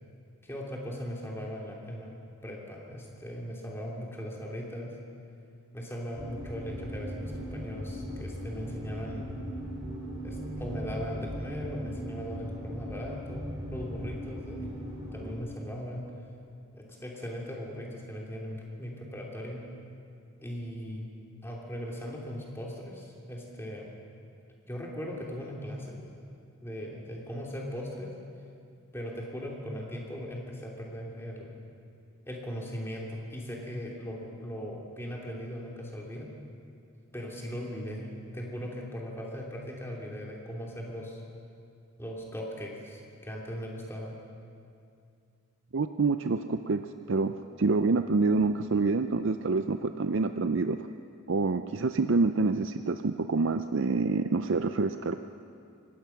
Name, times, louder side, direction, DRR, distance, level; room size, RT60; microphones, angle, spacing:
voice 1, 0.4-2.1 2.4-4.9 5.7-9.4 10.2-14.7 15.0-16.1 16.7-19.6 20.4-21.1 21.4-24.0 24.7-26.0 26.6-28.1 28.9-31.6 32.3-36.3 37.1-41.2 42.0-44.2, equal, 10° left, -2 dB, 3.1 m, -39 dB
sound 1, 6.2-15.3, equal, 15° right, 3.5 m, -38 dB
voice 2, 45.7-46.8 47.1-50.8 51.3-55.1, right 3 dB, 60° right, 9 dB, 0.5 m, -27 dB
25.5 x 19.0 x 5.9 m, 2.4 s
head